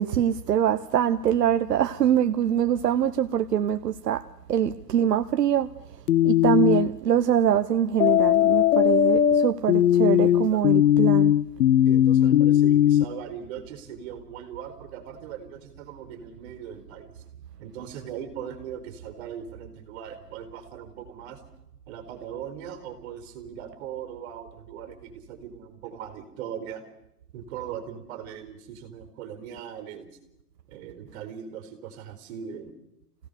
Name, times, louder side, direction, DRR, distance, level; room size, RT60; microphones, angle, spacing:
voice 1, 0.0-4.2 4.5-5.7 6.2-11.3, right 9 dB, 80° right, 1.1 m, -24 dB
sound 1, 6.1-6.9 8.0-13.1, left 11 dB, 65° left, 1.0 m, -19 dB
voice 2, 10.2-10.6 11.8-17.2 17.6-21.4 21.9-26.8 27.3-30.1 30.7-32.7, right 8 dB, 45° right, 4.5 m, -39 dB
26.5 x 17.0 x 6.9 m
hypercardioid pair, 145°, 47 cm